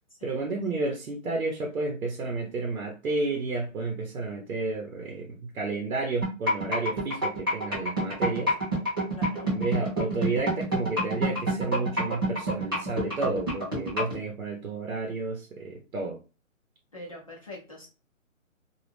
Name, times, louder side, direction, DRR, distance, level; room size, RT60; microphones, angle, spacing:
voice 1, 0.2-8.5 9.4-16.2, right 3 dB, 90° right, 0.8 m, -31 dB
sound 1, 6.2-14.2, right 1 dB, 15° right, 0.7 m, -27 dB
voice 2, 9.1-9.6 16.9-17.9, left 1 dB, 25° left, 0.6 m, -43 dB
2.3 x 2.0 x 3.2 m
hypercardioid pair, 175°, 41 cm